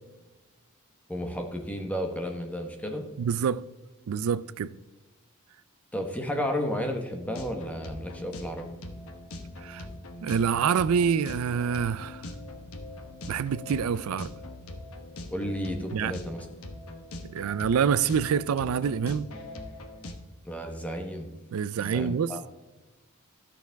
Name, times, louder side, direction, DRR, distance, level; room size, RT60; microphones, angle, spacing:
voice 1, 1.1-3.0 5.9-8.7 15.3-16.4 20.4-21.3 21.8-22.4, equal, 5° left, 1.0 m, -32 dB
voice 2, 3.2-3.6 4.1-4.8 9.6-9.8 10.2-12.3 13.3-14.3 15.9-16.1 17.3-19.3 21.5-22.4, right 7 dB, 70° right, 0.4 m, -26 dB
sound 1, 7.2-20.1, left 1 dB, 75° left, 1.0 m, -42 dB
13.0 x 6.8 x 3.5 m
head